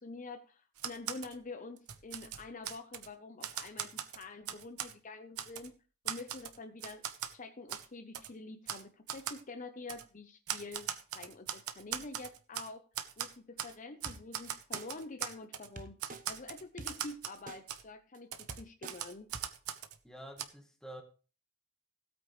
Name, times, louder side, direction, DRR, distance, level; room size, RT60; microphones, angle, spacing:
voice 1, 0.0-5.7 6.0-7.0 7.3-12.8 13.2-16.0 16.3-19.3, left 3 dB, 35° left, 0.7 m, -47 dB
Typewriter, 0.8-1.3 1.8-3.1 3.4-4.9 5.4-5.7 6.1-7.3 7.7-7.9 8.1-8.3 8.7-8.8 9.1-9.4 9.9-10.0 10.5-12.7 12.9-13.7 14.0-15.7 16.0-17.4 17.7-17.8 18.3-20.0 20.4-20.5, right 9 dB, 80° right, 1.0 m, -40 dB
sound 1, 14.1-14.2 14.7-14.9 15.8-16.2 16.8-16.9 17.5-17.6 18.1-18.2 18.5-18.9 19.3-19.4, right 3 dB, 35° right, 0.9 m, -45 dB
voice 2, 20.0-21.0, right 1 dB, ahead, 1.6 m, -48 dB
16.5 x 8.7 x 3.2 m
head